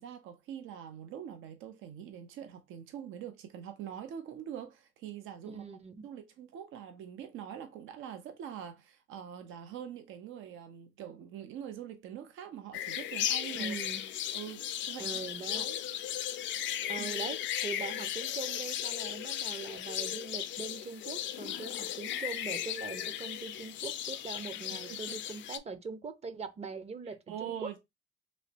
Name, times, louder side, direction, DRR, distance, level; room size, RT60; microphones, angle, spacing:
voice 1, 0.0-5.7 6.0-13.8 14.3-15.2 15.6-15.7 17.0-17.1 24.7-25.2 27.1-27.8, right 9 dB, 85° right, 0.6 m, -44 dB
voice 2, 5.5-6.0 13.5-14.1 15.0-15.8 16.9-27.8, right 4 dB, 30° right, 0.6 m, -42 dB
sound 1, 12.7-25.6, left 11 dB, 70° left, 0.4 m, -36 dB
3.1 x 3.0 x 2.7 m
cardioid pair, 90°, 20 cm